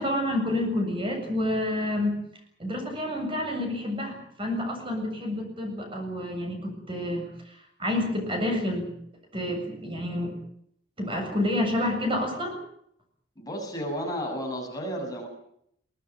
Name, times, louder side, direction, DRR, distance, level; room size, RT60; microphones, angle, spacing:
voice 1, 0.0-2.2 2.6-8.9 9.3-10.4 11.0-12.6, left 1 dB, 25° right, 3 dB, 7.7 m, -29 dB
voice 2, 13.4-15.3, equal, 20° left, 1 dB, 7.3 m, -32 dB
22.5 x 19.5 x 9.3 m, 0.71 s
head